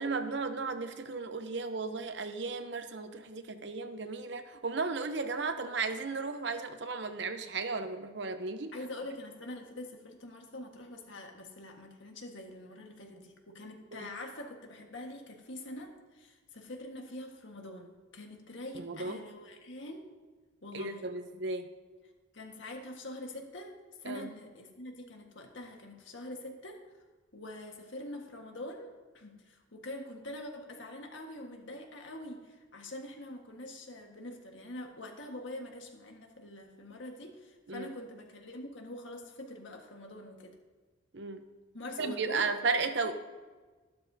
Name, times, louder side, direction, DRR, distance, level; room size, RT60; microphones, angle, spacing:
voice 1, 0.0-8.7 13.9-14.1 18.7-19.2 20.7-21.7 24.1-24.3 37.7-37.9 41.1-41.4 42.0-43.1, right 4 dB, 60° right, 8 dB, 0.8 m, -35 dB
voice 2, 8.7-20.1 20.6-21.1 22.3-26.8 27.3-40.6 41.7-42.5 43.0-43.1, left 1 dB, 75° left, 2 dB, 1.6 m, -45 dB
12.5 x 12.0 x 2.8 m, 1.3 s
head